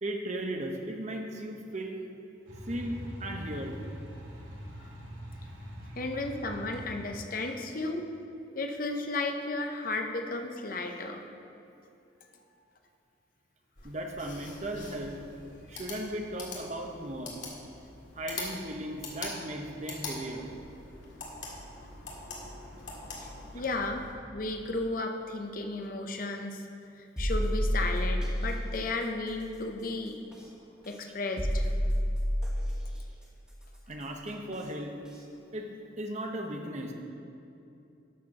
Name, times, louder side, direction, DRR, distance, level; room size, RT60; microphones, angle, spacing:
voice 1, 0.0-2.0 2.7-2.9 3.2-3.8 13.8-15.2 15.7-17.3 18.1-20.5 23.6-23.7 33.9-34.9 35.5-35.7 36.0-36.9, right 1 dB, 35° right, 3 dB, 0.9 m, -36 dB
sound 1, 2.5-7.5, equal, 85° right, 2.2 m, -43 dB
voice 2, 6.0-8.1 8.5-11.2 23.2-23.3 23.5-24.0 24.3-26.6 27.2-30.2 30.9-31.7, left 2 dB, 45° left, 4 dB, 0.8 m, -34 dB
sound 2, 13.8-24.1, left 3 dB, 75° left, 2.0 m, -44 dB
sound 3, 27.2-28.4 30.3-30.4 31.4-32.7 34.5-34.6 35.1-35.2, equal, 5° right, 1.3 m, -28 dB
12.0 x 4.4 x 6.5 m, 2.7 s
head